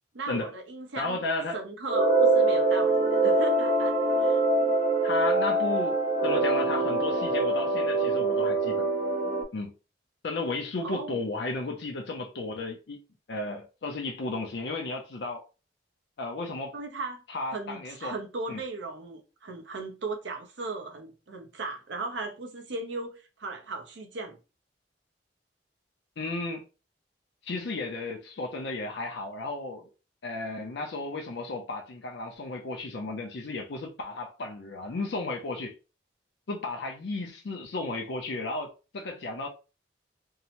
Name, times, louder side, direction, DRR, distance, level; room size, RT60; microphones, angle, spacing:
voice 1, 0.1-1.2 1.5-4.4 10.8-11.2 16.7-17.2 17.5-24.4, right 3 dB, 75° right, 0.7 m, -37 dB
voice 2, 1.0-1.6 5.0-8.9 9.5-9.7 10.2-13.0 13.3-15.4 16.2-16.7 17.3-18.1 18.5-18.6 26.2-26.6 27.4-29.9 30.2-35.7 36.5-39.5, left 2 dB, 65° left, 0.5 m, -34 dB
sound 1, 1.9-9.4, right 2 dB, 40° right, 0.9 m, -24 dB
2.7 x 2.1 x 2.8 m
head